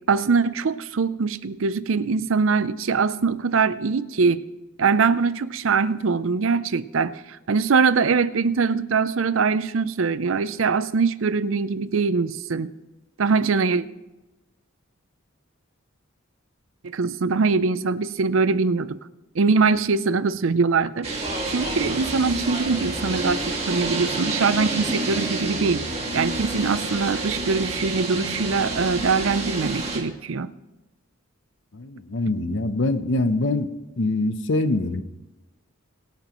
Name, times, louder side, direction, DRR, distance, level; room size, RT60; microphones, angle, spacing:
voice 1, 0.1-4.4 4.8-12.7 13.2-13.8 16.9-19.0 19.3-21.1 21.5-25.8 26.1-30.5, right 4 dB, 70° right, 15 dB, 0.5 m, -22 dB
sound 1, 21.0-30.0, right 2 dB, 30° right, 2.2 m, -28 dB
voice 2, 31.7-33.7 34.0-35.0, left 2 dB, 60° left, 11 dB, 0.7 m, -24 dB
23.0 x 8.8 x 3.0 m, 1.0 s
head